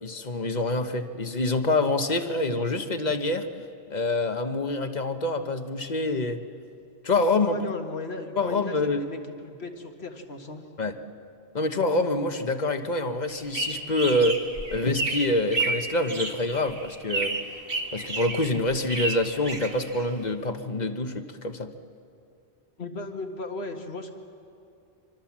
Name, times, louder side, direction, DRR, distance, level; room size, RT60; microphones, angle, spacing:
voice 1, 0.0-3.5 3.9-6.4 7.0-7.6 8.4-9.0 10.8-11.0 11.5-14.4 14.7-17.4 17.9-21.7, left 2 dB, 45° left, 8 dB, 1.2 m, -26 dB
voice 2, 7.4-9.2 9.4-10.6 22.8-24.1, left 2 dB, 75° left, 4 dB, 2.1 m, -36 dB
sound 1, 13.3-20.3, right 3 dB, 60° right, 1.9 m, -32 dB
25.5 x 25.5 x 7.4 m, 2.5 s
omnidirectional pair, 1.1 m